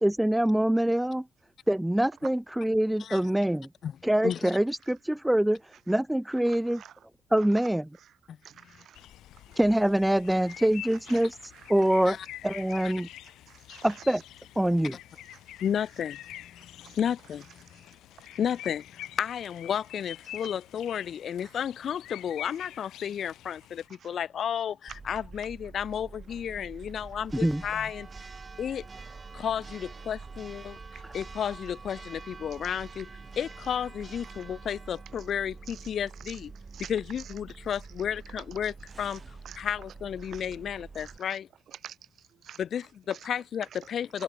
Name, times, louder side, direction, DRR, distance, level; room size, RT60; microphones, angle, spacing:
voice 1, 0.0-1.2 1.7-3.7 4.0-6.8 7.3-7.9 9.6-12.2 12.4-13.1 13.8-14.2 14.6-15.0 27.3-27.6, right 1 dB, 5° right, 0.6 m, -25 dB
voice 2, 8.4-9.0 11.1-11.2 13.5-13.9 16.8-17.0 30.9-31.0 35.7-35.8 36.2-36.4 36.7-36.9 38.6-38.7 39.4-39.6 40.3-40.4 41.0-41.4 41.8-42.6 43.1-43.2 44.1-44.2, right 9 dB, 65° right, 0.9 m, -47 dB
sound 1, 8.9-23.9, left 13 dB, 85° left, 2.1 m, -46 dB
voice 3, 15.6-16.2 16.8-17.5 18.4-28.1 28.6-28.9 29.3-33.1 33.4-36.5 36.9-39.2 39.6-41.5 42.6-44.2, left 8 dB, 60° left, 0.8 m, -32 dB
Church bell, 24.9-41.2, right 4 dB, 30° right, 2.0 m, -46 dB
cardioid pair, 90°, 0 cm